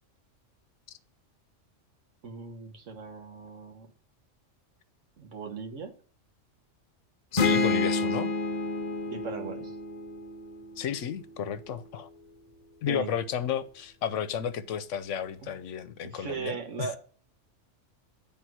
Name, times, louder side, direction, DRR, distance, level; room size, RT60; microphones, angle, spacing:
voice 1, 2.2-3.9 5.2-5.9 9.1-9.8 12.9-13.1 15.4-15.5 16.0-17.0, right 5 dB, 80° right, 1.5 m, -38 dB
voice 2, 7.3-8.3 10.8-12.1 12.8-17.0, left 8 dB, 80° left, 1.0 m, -32 dB
sound 1, 7.4-11.1, left 3 dB, 40° left, 0.9 m, -29 dB
9.4 x 3.6 x 6.0 m
omnidirectional pair, 1.3 m